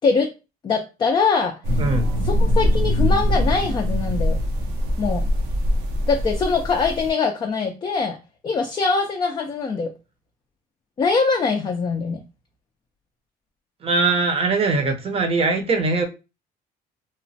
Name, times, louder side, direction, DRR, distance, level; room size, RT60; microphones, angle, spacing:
voice 1, 0.6-1.6 2.2-4.4 5.0-5.3 6.1-8.2 8.4-9.9 11.0-12.2, left 4 dB, 25° left, 0.4 m, -22 dB
sound 1, 1.6-7.1, equal, 85° right, 0.6 m, -22 dB
voice 2, 1.8-2.1 13.8-16.0, right 3 dB, 35° right, 0.6 m, -21 dB
3.0 x 2.0 x 2.6 m
cardioid pair, 110°, 17 cm